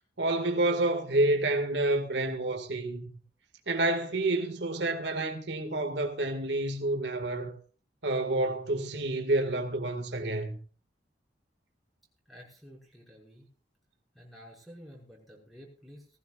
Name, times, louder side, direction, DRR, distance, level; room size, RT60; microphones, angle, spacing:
voice 1, 0.2-3.1 3.7-7.6 8.0-10.6, right 2 dB, 85° right, 2.1 m, -29 dB
voice 2, 12.3-13.5 14.1-16.1, equal, ahead, 5.9 m, -51 dB
20.0 x 15.5 x 2.5 m
head